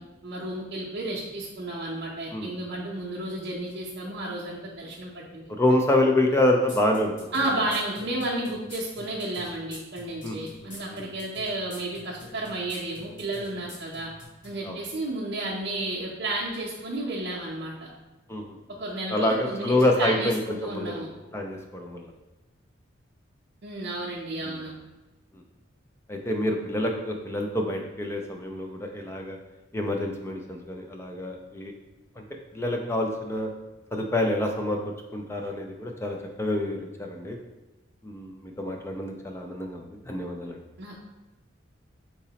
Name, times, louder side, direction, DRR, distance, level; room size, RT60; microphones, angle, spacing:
voice 1, 0.0-5.5 7.3-14.1 14.4-17.9 18.8-21.1 23.6-24.7 40.8-41.0, right 1 dB, 60° right, -6 dB, 0.6 m, -32 dB
voice 2, 5.5-7.7 10.2-11.1 14.6-14.8 18.3-18.6 19.1-21.0 21.3-22.1 24.4-24.6 26.1-29.4 29.7-31.7 32.2-32.3 32.5-33.5 33.9-34.8 35.1-37.4 38.0-40.6, left 1 dB, 15° left, 2 dB, 0.3 m, -27 dB
sound 1, 6.7-14.6, left 1 dB, 40° left, 1.1 m, -45 dB
3.9 x 2.9 x 2.8 m, 1.1 s
head